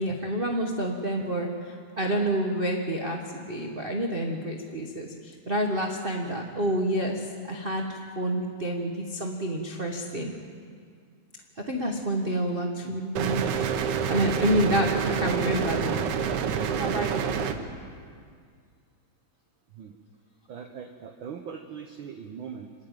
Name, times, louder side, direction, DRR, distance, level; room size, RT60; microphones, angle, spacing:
voice 1, 0.0-10.3 11.7-13.7 14.1-16.0 16.8-17.4, right 1 dB, 45° right, 1 dB, 0.7 m, -28 dB
sound 1, 13.2-17.6, right 7 dB, 85° right, 2.5 m, -27 dB
voice 2, 20.5-22.7, right 7 dB, 65° right, 4 dB, 1.3 m, -41 dB
26.0 x 12.5 x 9.2 m, 2.1 s
omnidirectional pair, 3.3 m